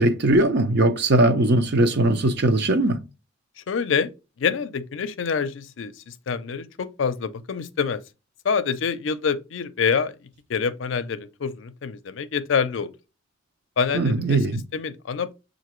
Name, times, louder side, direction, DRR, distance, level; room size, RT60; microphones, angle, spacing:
voice 1, 0.0-3.0 13.9-14.6, right 2 dB, 60° right, 0.6 m, -20 dB
voice 2, 3.7-4.1 4.4-8.0 8.4-10.1 10.5-12.9 13.8-14.4 14.7-15.3, left 6 dB, 70° left, 0.5 m, -26 dB
6.7 x 2.6 x 3.0 m
head